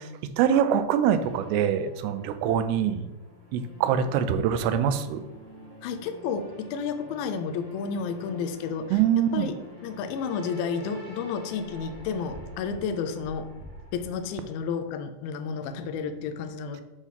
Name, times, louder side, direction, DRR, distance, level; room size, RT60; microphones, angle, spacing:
voice 1, 0.2-3.1 3.5-5.2 8.9-9.5, right 9 dB, 90° right, 10 dB, 2.7 m, -24 dB
sound 1, 1.2-14.7, left 1 dB, 30° right, 1.4 m, -47 dB
voice 2, 5.8-9.0 9.3-9.5 9.8-13.5 13.9-16.8, left 6 dB, 80° left, 7 dB, 2.2 m, -31 dB
8.2 x 3.0 x 5.6 m, 1.0 s
omnidirectional pair, 4.7 m